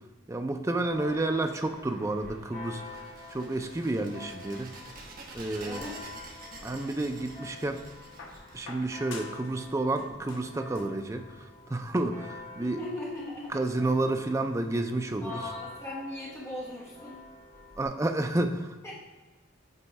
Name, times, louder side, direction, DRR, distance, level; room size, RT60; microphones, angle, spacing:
voice 1, 0.3-2.8 3.3-4.7 5.3-5.9 6.6-7.8 8.5-11.2 11.7-12.8 13.5-15.4 17.8-18.9, right 2 dB, 15° right, 6 dB, 0.4 m, -30 dB
Church bell, 0.9-17.9, left 3 dB, 35° left, 1.6 m, -48 dB
sound 1, 2.8-9.3, right 3 dB, 45° right, 1.1 m, -48 dB
voice 2, 5.6-6.0 12.8-13.5 15.2-17.2 18.8-18.9, left 1 dB, 15° left, -6 dB, 1.1 m, -38 dB
sound 2, 6.4-7.4 8.2-9.5 9.8-11.1 12.1-12.2, left 3 dB, 65° left, 1.0 m, -47 dB
8.2 x 3.1 x 4.6 m, 1.3 s
head